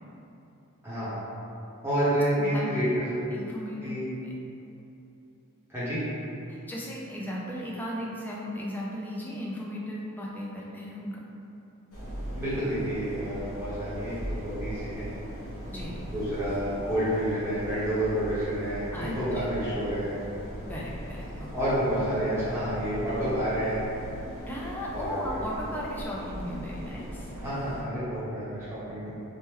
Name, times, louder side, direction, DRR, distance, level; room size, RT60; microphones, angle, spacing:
voice 1, 0.8-1.2 1.8-3.1 3.8-4.0 5.7-6.0 12.3-15.1 16.1-20.1 21.5-23.8 24.9-25.4 27.4-29.1, equal, 10° right, -12 dB, 0.9 m, -29 dB
voice 2, 2.4-2.7 3.3-3.9 4.2-4.3 6.5-11.2 15.7-15.9 18.9-19.6 20.7-21.5 24.4-27.5, equal, 10° left, -4 dB, 0.3 m, -36 dB
sound 1, 11.9-27.8, equal, 70° left, 1.3 m, -39 dB
2.9 x 2.1 x 3.5 m, 2.9 s
head